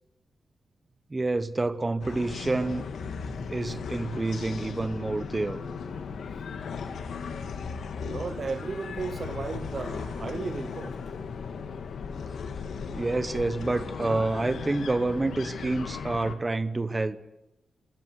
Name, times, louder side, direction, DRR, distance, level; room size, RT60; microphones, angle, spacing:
voice 1, 1.1-2.8 3.5-5.6 12.9-17.2, right 2 dB, 20° right, 1.0 m, -28 dB
sound 1, 2.0-16.4, left 5 dB, 80° left, 2.0 m, -36 dB
voice 2, 8.1-11.0, right 4 dB, 45° right, 0.7 m, -35 dB
24.0 x 16.5 x 8.0 m
wide cardioid pair, 115°, 0 cm